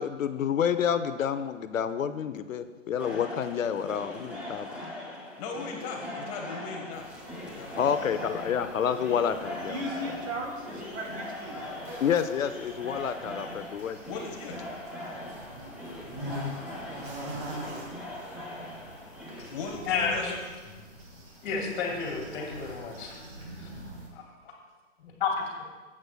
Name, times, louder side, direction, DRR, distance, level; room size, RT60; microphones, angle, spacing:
voice 1, 0.0-4.7 7.7-9.8 12.0-14.0, left 8 dB, 85° left, 11 dB, 0.7 m, -29 dB
sound 1, 3.0-19.7, left 1 dB, 5° right, 0.8 m, -41 dB
voice 2, 5.4-7.0 7.4-8.0 10.3-10.5 14.0-14.6 15.1-15.2 19.5-20.4 20.6-21.2, left 4 dB, 25° left, 2 dB, 1.2 m, -39 dB
sound 2, 6.9-24.1, equal, 35° right, 3.0 m, -44 dB
voice 3, 9.6-11.6 13.1-13.3, right 1 dB, 80° right, 0 dB, 2.6 m, -37 dB
voice 4, 19.9-20.3 21.4-23.1 23.6-23.7 24.1-24.2 25.0-25.6, left 5 dB, 40° left, -1 dB, 2.5 m, -31 dB
14.0 x 8.5 x 2.3 m, 1.3 s
hypercardioid pair, 145°, 39 cm